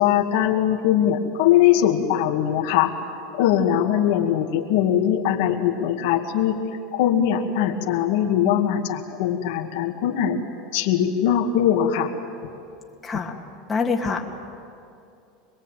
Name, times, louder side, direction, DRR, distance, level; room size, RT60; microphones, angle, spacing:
voice 1, 0.0-2.9 3.3-6.6 6.9-10.4 10.7-12.1, left 10 dB, 70° left, 2 dB, 2.3 m, -21 dB
voice 2, 13.0-13.3 13.7-14.2, left 4 dB, 15° left, -1 dB, 2.4 m, -24 dB
26.5 x 21.5 x 9.2 m, 2.5 s
supercardioid pair, 145°, 0 cm